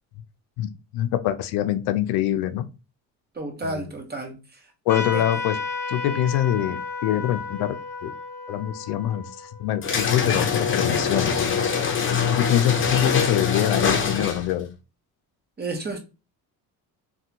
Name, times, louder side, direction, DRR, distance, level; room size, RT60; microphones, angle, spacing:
voice 1, 0.6-2.7 3.6-3.8 4.9-5.6 5.9-7.8 8.0-8.1 8.5-9.2 9.6-11.5 12.3-14.7, left 12 dB, 85° left, 0.5 m, -24 dB
voice 2, 3.4-4.3 5.1-5.2 15.6-16.0, right 2 dB, 25° right, 1.1 m, -31 dB
Trumpet, 4.9-10.0, left 4 dB, 10° left, 1.9 m, -33 dB
sound 1, 9.8-14.6, left 6 dB, 35° left, 0.7 m, -23 dB
3.3 x 2.4 x 2.8 m
cardioid pair, 100°, 38 cm